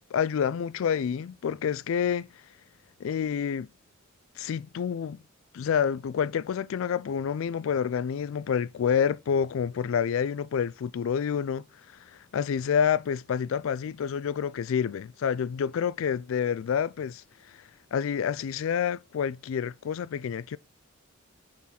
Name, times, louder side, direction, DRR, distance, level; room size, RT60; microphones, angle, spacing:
voice 1, 0.1-2.3 3.0-3.7 4.4-5.2 5.5-11.6 12.1-17.2 17.9-20.6, left 7 dB, 70° left, 0.3 m, -28 dB
7.3 x 3.9 x 4.3 m
head